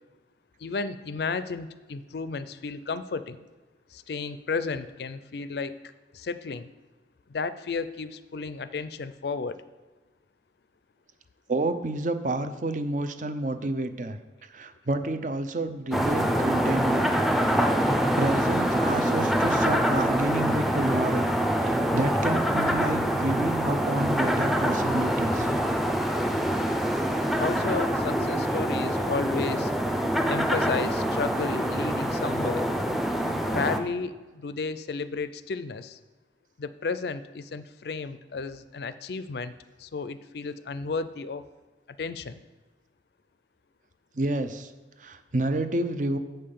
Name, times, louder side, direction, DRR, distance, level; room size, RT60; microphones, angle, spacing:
voice 1, 0.6-3.4 3.9-5.8 6.1-6.7 7.3-9.6 27.4-29.7 30.3-32.7 33.5-36.0 36.6-39.5 39.8-41.5 42.0-42.4, left 4 dB, 60° left, 13 dB, 0.4 m, -33 dB
voice 2, 11.5-14.2 14.5-17.2 17.8-21.3 21.6-25.5 44.1-44.7 45.0-46.2, right 2 dB, 45° right, 10 dB, 0.6 m, -29 dB
sound 1, 15.9-33.8, equal, ahead, 0.6 m, -25 dB
7.7 x 5.6 x 6.7 m, 1.3 s
head